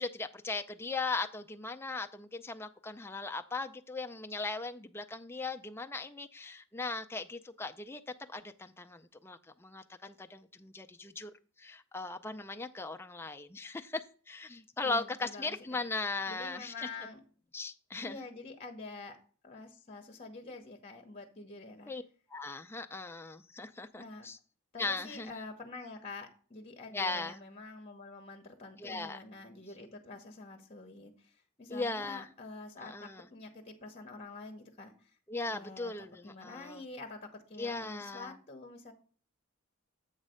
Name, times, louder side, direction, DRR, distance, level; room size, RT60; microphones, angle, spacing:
voice 1, 0.0-8.0 8.3-11.3 11.6-16.9 17.5-18.2 21.9-22.0 22.3-24.4 24.8-25.3 26.9-27.4 28.8-29.2 31.7-32.3 32.8-33.3 35.3-36.8 37.6-38.4, left 3 dB, 10° left, 0.4 m, -38 dB
voice 2, 14.8-15.8 16.3-17.2 18.0-19.2 19.4-21.9 24.0-24.3 24.7-35.1 35.5-35.9 36.2-38.9, left 3 dB, 30° left, 0.9 m, -47 dB
8.1 x 3.2 x 6.4 m
head